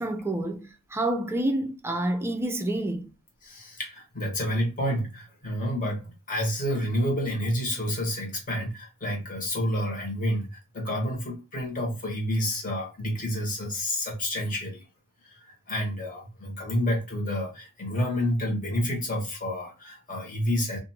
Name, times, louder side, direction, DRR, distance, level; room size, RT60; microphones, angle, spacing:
voice 1, 0.0-3.1, right 1 dB, 10° right, 0.3 m, -28 dB
voice 2, 3.4-14.9 15.2-20.8, equal, 40° left, 1.2 m, -29 dB
2.6 x 2.5 x 2.7 m
head